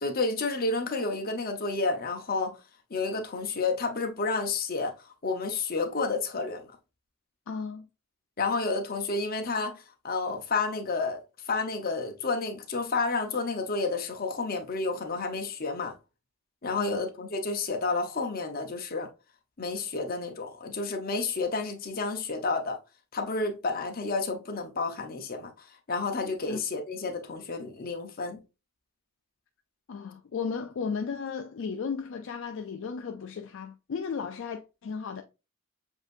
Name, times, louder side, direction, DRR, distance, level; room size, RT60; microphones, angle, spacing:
voice 1, 0.0-2.6 2.9-4.9 5.2-6.6 8.4-11.2 11.5-15.9 16.6-19.1 19.6-22.8 23.1-25.5 25.9-28.4, left 3 dB, 40° left, 0.8 m, -30 dB
voice 2, 7.5-7.9 16.8-17.0 26.4-26.6 29.9-35.2, left 5 dB, 60° left, 0.4 m, -35 dB
7.2 x 2.7 x 2.5 m
head